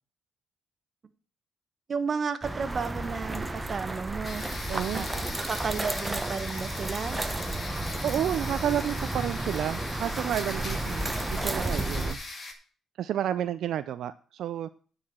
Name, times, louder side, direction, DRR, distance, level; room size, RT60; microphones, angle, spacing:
voice 1, 1.9-4.4 4.9-7.2, right 5 dB, 45° right, 11 dB, 1.0 m, -33 dB
sound 1, 2.4-12.2, right 2 dB, 15° right, 0.9 m, -32 dB
sound 2, 4.2-12.5, left 3 dB, 40° left, 2.0 m, -40 dB
voice 2, 4.7-5.1 8.0-12.2 13.0-14.7, right 10 dB, 75° right, 12 dB, 0.4 m, -31 dB
9.4 x 4.9 x 7.2 m, 0.42 s
cardioid pair, 90°, 0 cm